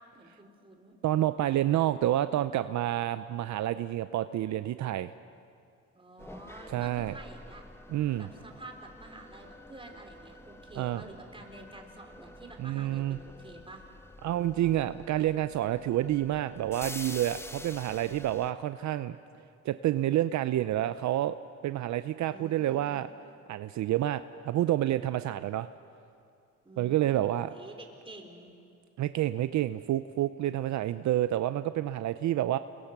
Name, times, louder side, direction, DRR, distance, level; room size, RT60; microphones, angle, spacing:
voice 1, 0.2-0.9 5.9-7.6 8.1-13.8 22.3-23.0 26.6-28.5, right 2 dB, 15° right, 3 dB, 3.9 m, -49 dB
voice 2, 1.0-5.1 6.7-7.1 7.9-8.3 10.8-11.0 12.6-13.2 14.2-19.2 19.6-21.4 21.6-23.1 23.5-25.7 26.8-27.5 29.0-32.6, right 13 dB, 70° right, 12 dB, 0.6 m, -29 dB
sound 1, 6.2-18.5, left 1 dB, 10° left, 1.0 m, -48 dB
29.5 x 22.0 x 6.0 m, 2.4 s
cardioid pair, 90°, 30 cm